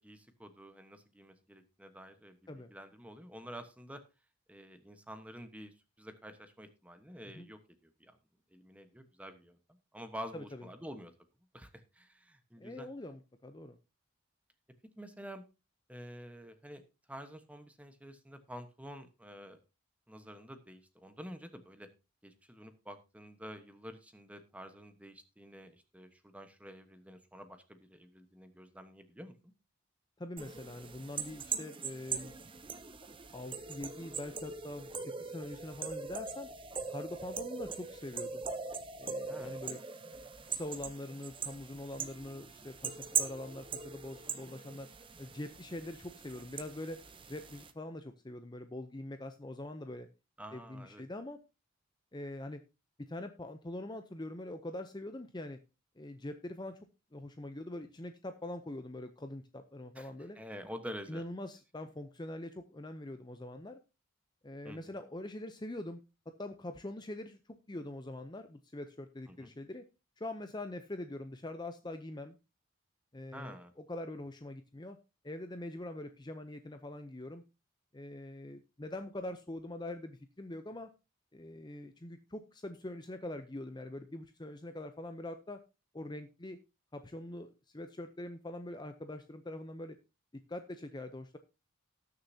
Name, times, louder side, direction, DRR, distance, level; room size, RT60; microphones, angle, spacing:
voice 1, 0.0-4.0 4.5-8.2 8.5-9.6 9.9-11.1 11.5-12.9 15.0-15.4 15.9-16.8 17.1-19.6 20.1-21.9 22.2-29.5 39.3-39.6 50.4-51.0 59.9-60.1 60.3-61.2 64.6-64.8 69.3-69.5 73.3-73.7, equal, 5° right, 8 dB, 1.1 m, -49 dB
voice 2, 10.3-10.7 12.6-13.8 30.2-32.3 33.3-36.5 36.9-38.4 39.0-39.8 40.4-44.9 45.2-47.0 47.3-50.1 50.5-51.4 52.1-52.6 53.0-55.6 56.0-56.8 57.1-60.4 61.1-63.8 64.4-66.0 66.4-69.8 70.2-72.4 73.1-73.6 73.9-75.0 75.2-77.4 77.9-80.9 81.3-85.6 85.9-86.6 86.9-90.0 90.5-91.4, left 1 dB, 20° left, 8 dB, 0.6 m, -43 dB
sound 1, 30.4-47.7, right 5 dB, 25° right, 0.8 m, -41 dB
19.0 x 6.6 x 2.8 m, 0.28 s
head